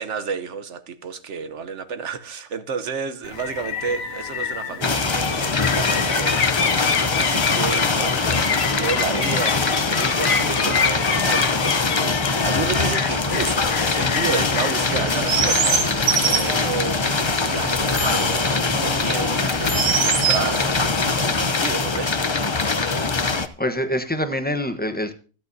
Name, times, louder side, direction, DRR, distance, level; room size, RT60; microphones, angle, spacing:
voice 1, 0.0-15.8 16.4-20.7 21.2-22.1, right 6 dB, 55° right, 1.2 m, -31 dB
sound 1, 3.2-15.7, left 6 dB, 65° left, 1.5 m, -27 dB
sound 2, 4.8-23.5, left 4 dB, 40° left, 0.4 m, -22 dB
Chirp tweet, 14.9-21.5, right 7 dB, 80° right, 1.7 m, -26 dB
voice 2, 23.6-25.1, equal, 10° left, 0.8 m, -26 dB
25.5 x 9.1 x 2.7 m
omnidirectional pair, 1.6 m